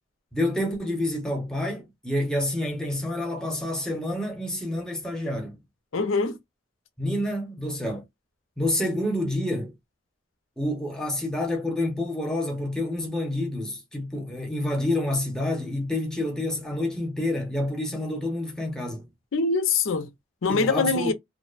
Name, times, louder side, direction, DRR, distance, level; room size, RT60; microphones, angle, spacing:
voice 1, 0.3-5.6 7.0-8.0 8.6-9.7 10.6-19.1 20.5-21.1, left 1 dB, 5° left, 0.7 m, -28 dB
voice 2, 5.9-6.4 19.3-20.1 20.4-21.1, left 4 dB, 90° left, 0.6 m, -23 dB
2.5 x 2.1 x 2.4 m
head